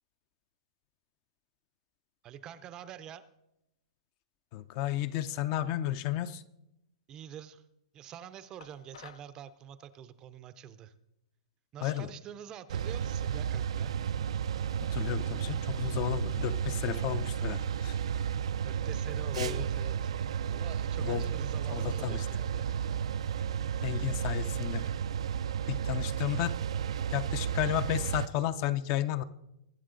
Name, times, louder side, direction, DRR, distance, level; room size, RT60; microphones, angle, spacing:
voice 1, 2.2-3.3 7.1-7.6 7.9-10.9 11.7-13.9 18.6-22.7, right 9 dB, 25° right, 14 dB, 0.5 m, -46 dB
voice 2, 4.5-6.4 11.8-12.1 14.9-18.0 19.4-19.6 21.0-21.3 21.7-22.3 23.8-24.8 25.7-26.6 27.1-29.2, left 12 dB, 35° left, 14 dB, 0.5 m, -32 dB
sound 1, 8.6-9.3, left 8 dB, 75° left, 0.7 m, -52 dB
sound 2, 12.7-28.3, right 8 dB, 80° right, 0.4 m, -33 dB
21.5 x 7.4 x 3.8 m, 0.86 s
hypercardioid pair, 160°, 3 cm